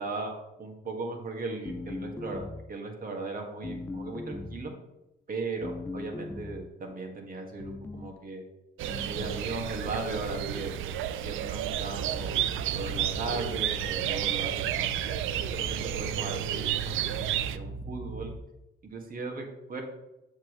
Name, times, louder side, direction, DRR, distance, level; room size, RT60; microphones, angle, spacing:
voice 1, 0.0-4.7 5.3-8.4 9.1-10.7 11.2-12.5 12.7-14.9 15.5-18.3 18.8-19.8, right 3 dB, 45° right, 2 dB, 1.9 m, -37 dB
sound 1, 1.6-2.8 3.6-4.7 5.6-6.7 7.6-8.2 8.9-9.5, left 2 dB, 10° left, 0.3 m, -39 dB
sound 2, 8.8-17.6, right 11 dB, 85° right, 0.4 m, -31 dB
sound 3, 11.9-18.4, right 1 dB, 15° right, 1.4 m, -40 dB
7.5 x 7.0 x 3.2 m, 0.93 s
cardioid pair, 90°, 20 cm